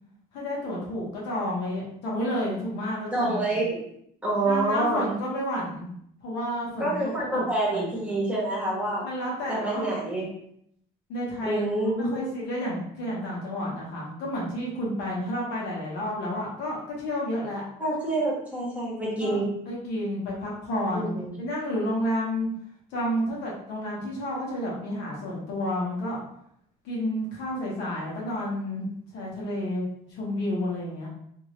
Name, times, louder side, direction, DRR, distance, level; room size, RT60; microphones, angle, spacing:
voice 1, 0.3-3.3 4.5-5.9 6.2-6.9 7.3-7.4 7.7-7.9 9.0-9.9 11.1-11.6 12.0-17.6 19.2-19.4 19.7-21.1 21.4-22.5 22.9-26.2 26.8-28.9 29.1-29.8 30.1-31.1, left 1 dB, 90° left, -4 dB, 1.2 m, -30 dB
voice 2, 3.1-3.8 4.2-5.1 6.8-9.0 9.5-10.3 11.4-12.2 17.8-19.5 20.9-21.3, right 2 dB, 10° right, -5 dB, 1.4 m, -27 dB
2.8 x 2.8 x 3.1 m, 0.70 s
cardioid pair, 110°, 17 cm